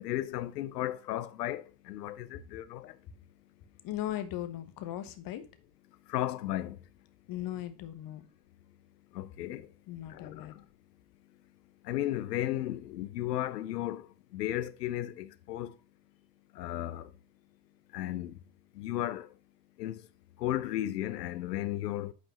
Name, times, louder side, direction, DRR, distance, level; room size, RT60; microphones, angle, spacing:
voice 1, 0.0-3.0 6.1-6.8 9.1-9.7 10.1-10.5 11.8-14.1 14.3-15.7 16.5-17.1 17.9-18.4 18.7-19.3 19.8-20.0 20.4-22.1, left 14 dB, 75° left, 0.8 m, -34 dB
voice 2, 3.8-5.5 7.3-8.3 9.9-10.5, left 13 dB, 45° left, 1.2 m, -38 dB
9.0 x 5.2 x 2.9 m
figure-of-eight pair, 70°, 48 cm